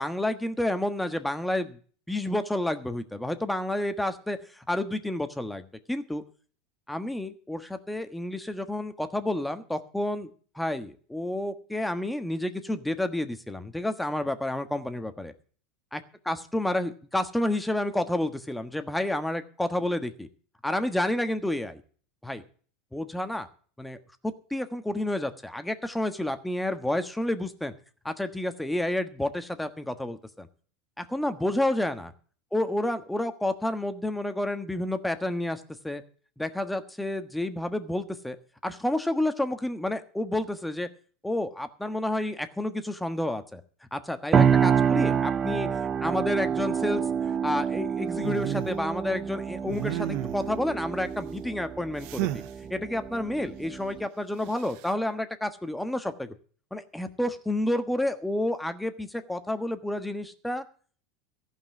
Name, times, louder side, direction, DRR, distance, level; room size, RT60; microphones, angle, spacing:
voice 1, 0.0-1.8 2.1-6.2 6.9-10.3 10.5-15.3 15.9-16.0 16.3-20.3 20.6-21.8 22.2-22.4 22.9-23.5 23.8-24.0 24.2-27.7 28.0-30.5 31.0-32.1 32.5-36.0 36.4-38.4 38.6-40.9 41.2-43.6 43.9-47.0 47.4-52.4 52.7-56.3 56.7-60.6, left 1 dB, 5° left, 9 dB, 1.3 m, -30 dB
sound 1, 44.3-54.1, right 7 dB, 30° right, 0.6 m, -27 dB
sound 2, 48.2-48.8 49.6-50.6 52.0-52.5 54.5-54.9, right 14 dB, 60° right, 0.9 m, -32 dB
14.5 x 5.6 x 9.3 m, 0.43 s
hypercardioid pair, 90°, 0 cm